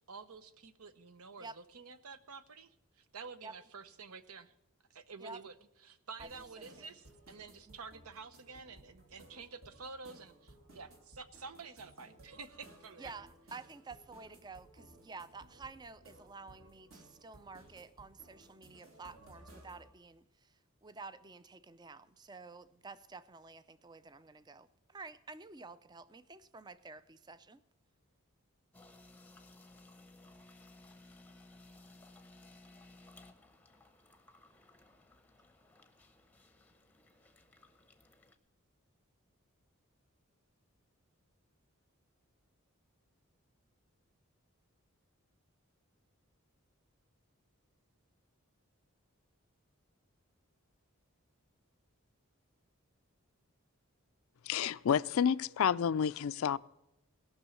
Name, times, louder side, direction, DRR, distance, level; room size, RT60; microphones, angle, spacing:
voice 1, 0.1-2.7 3.0-4.5 4.9-5.5 5.8-13.1, right 4 dB, 80° right, 0.8 m, -50 dB
voice 2, 6.2-7.0 7.7-7.8 13.0-20.5 20.8-27.6, right 4 dB, 20° right, 0.4 m, -50 dB
sound 1, 6.2-19.9, right 1 dB, 65° right, 2.9 m, -59 dB
sound 2, 28.7-38.4, left 2 dB, 5° left, 0.7 m, -59 dB
voice 3, 54.5-56.6, left 7 dB, 70° left, 0.4 m, -30 dB
17.5 x 6.1 x 7.0 m
head